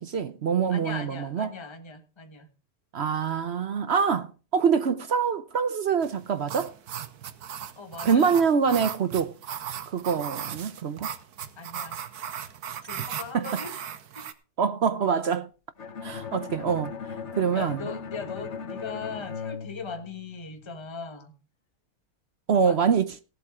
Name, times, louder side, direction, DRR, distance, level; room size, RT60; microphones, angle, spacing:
voice 1, 0.0-1.6 2.9-6.7 8.0-9.3 9.9-11.1 13.3-13.6 14.6-15.5 16.0-17.0 17.3-17.9 22.5-23.1, right 6 dB, 55° right, 0.9 m, -25 dB
voice 2, 0.7-2.5 7.8-8.4 11.6-12.0 12.8-13.7 14.1-14.3 17.5-21.3 22.5-22.8, left 5 dB, 20° left, 1.5 m, -39 dB
sound 1, 6.0-14.3, right 9 dB, 85° right, 1.5 m, -37 dB
Bowed string instrument, 15.8-20.7, left 5 dB, 50° left, 1.3 m, -38 dB
16.5 x 7.9 x 4.9 m
omnidirectional pair, 1.6 m